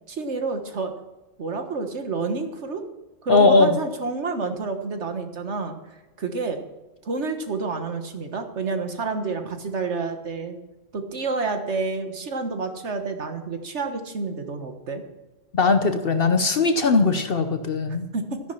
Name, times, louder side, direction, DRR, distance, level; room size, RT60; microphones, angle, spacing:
voice 1, 0.1-0.9 1.4-2.8 3.2-5.7 6.2-6.6 7.0-10.6 10.9-15.0 17.9-18.4, right 4 dB, 80° right, 6 dB, 1.7 m, -29 dB
voice 2, 3.3-3.8 15.5-18.1, left 3 dB, 55° left, 8 dB, 1.0 m, -19 dB
13.5 x 10.5 x 5.7 m, 1.1 s
omnidirectional pair, 1.2 m